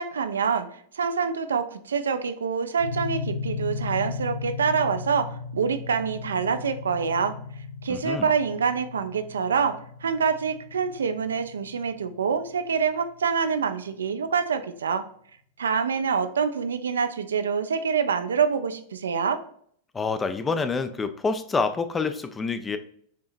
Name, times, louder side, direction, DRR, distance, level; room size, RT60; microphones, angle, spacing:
voice 1, 0.0-7.4 7.8-15.0 15.6-19.4, right 6 dB, 70° right, 9 dB, 0.4 m, -26 dB
sound 1, 2.8-12.9, left 4 dB, 90° right, 0.8 m, -36 dB
voice 2, 7.9-8.3 19.9-22.8, left 4 dB, 15° left, 10 dB, 0.4 m, -27 dB
6.5 x 2.8 x 2.5 m, 0.62 s
figure-of-eight pair, 90°, 0 cm